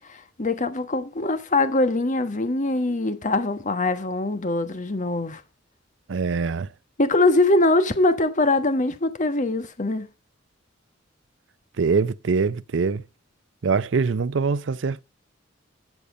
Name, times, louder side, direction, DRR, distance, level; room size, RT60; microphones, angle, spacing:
voice 1, 0.0-5.4 7.0-10.1, left 2 dB, 40° left, 1.3 m, -22 dB
voice 2, 6.1-6.7 11.8-13.0 13.6-15.0, right 4 dB, 65° right, 0.5 m, -23 dB
13.5 x 6.9 x 5.1 m
head